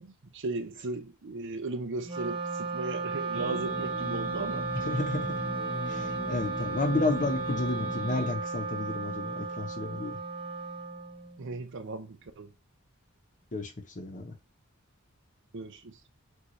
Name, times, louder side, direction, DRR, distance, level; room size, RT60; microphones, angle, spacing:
voice 1, 0.0-4.7 11.4-12.5 15.5-15.9, right 3 dB, 60° right, 0.7 m, -36 dB
Wind instrument woodwind instrument, 2.0-11.6, right 4 dB, 25° right, 0.9 m, -35 dB
sound 1, 3.3-8.3, left 2 dB, 20° left, 0.6 m, -39 dB
voice 2, 4.7-5.3 5.9-10.2 13.5-14.3, left 2 dB, 40° left, 1.0 m, -31 dB
6.4 x 2.6 x 3.2 m
head